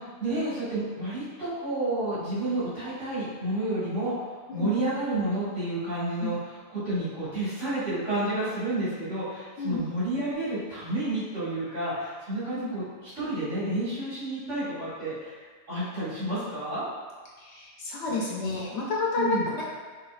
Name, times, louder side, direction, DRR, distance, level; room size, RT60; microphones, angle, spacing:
voice 1, 0.0-4.1 4.5-15.4 15.7-16.8 18.1-18.2 19.1-19.5, right 1 dB, 80° right, -12 dB, 2.1 m, -30 dB
voice 2, 17.4-19.6, left 3 dB, 70° left, -4 dB, 0.9 m, -30 dB
5.7 x 2.6 x 2.5 m, 1.4 s
omnidirectional pair, 1.2 m